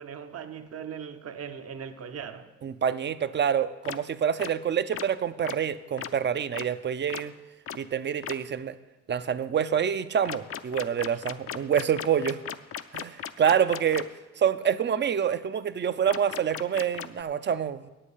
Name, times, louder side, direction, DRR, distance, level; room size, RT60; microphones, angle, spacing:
voice 1, 0.0-2.5, right 7 dB, 55° right, 1.0 m, -39 dB
voice 2, 2.6-7.3 7.7-8.8 9.1-12.4 12.9-14.1 14.4-17.9, right 8 dB, 35° right, 0.6 m, -27 dB
sound 1, 3.8-4.0 4.4-4.5 4.9-5.0 5.4-5.5 6.0-6.1 6.5-6.6 7.1-7.2 7.7-7.8 8.2-8.3 10.2-14.0 16.1-17.2, left 9 dB, 50° left, 0.5 m, -36 dB
8.3 x 7.7 x 8.3 m
cardioid pair, 90°, 30 cm